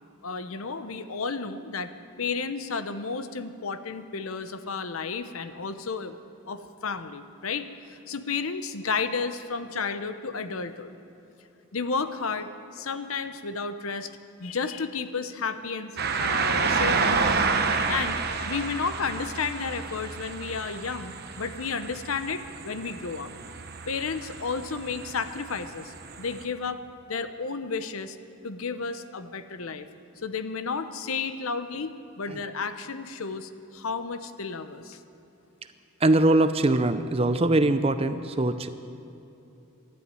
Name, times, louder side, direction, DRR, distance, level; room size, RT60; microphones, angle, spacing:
voice 1, 0.2-1.9 2.2-6.2 6.5-11.0 11.7-14.1 14.4-17.5 17.9-23.3 23.9-28.2 28.4-29.9 30.2-35.0, left 5 dB, 75° left, 11 dB, 0.8 m, -32 dB
sound 1, 16.0-26.4, right 4 dB, 45° right, 0.9 m, -30 dB
voice 2, 36.0-38.7, right 2 dB, 25° right, 10 dB, 0.5 m, -22 dB
12.5 x 11.0 x 9.2 m, 2.8 s
head